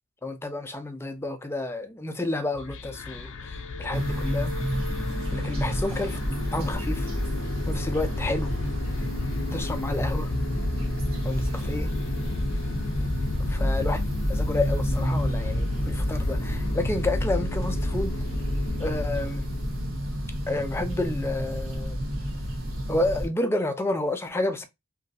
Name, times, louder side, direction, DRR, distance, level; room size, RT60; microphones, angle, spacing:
voice 1, 0.2-3.3 3.8-4.6 5.3-7.1 7.7-8.5 9.5-10.3 11.2-12.0 13.5-18.2 18.8-19.5 20.5-22.0 22.9-24.6, left 2 dB, 10° left, 0.4 m, -30 dB
sound 1, 2.5-20.0, left 3 dB, 65° left, 0.5 m, -34 dB
sound 2, 3.9-23.3, equal, 85° right, 1.2 m, -29 dB
2.9 x 2.6 x 2.5 m
head